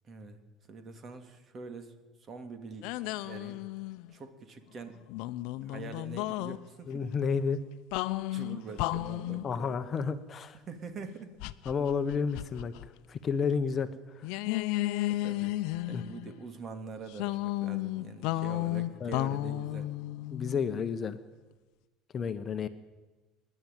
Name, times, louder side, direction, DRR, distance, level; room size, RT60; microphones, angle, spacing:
voice 1, 0.0-0.4 0.7-2.9 3.2-3.6 4.1-5.0 5.6-6.9 8.3-9.8 10.6-11.4 15.1-15.5 15.9-19.9, right 4 dB, 35° right, 8 dB, 2.6 m, -44 dB
sound 1, 2.8-4.1 5.1-6.6 7.9-9.5 11.4-12.9 13.1-13.3 14.2-16.3 17.1-20.9, left 17 dB, 75° left, 0.8 m, -33 dB
voice 2, 6.9-7.6 9.4-10.6 11.7-12.7 13.1-13.9 14.1-14.3 15.9-16.0 19.0-19.2 20.3-21.2 22.1-22.7, left 6 dB, 35° left, 10 dB, 1.1 m, -31 dB
26.5 x 11.0 x 9.2 m, 1.2 s
cardioid pair, 125°, 0 cm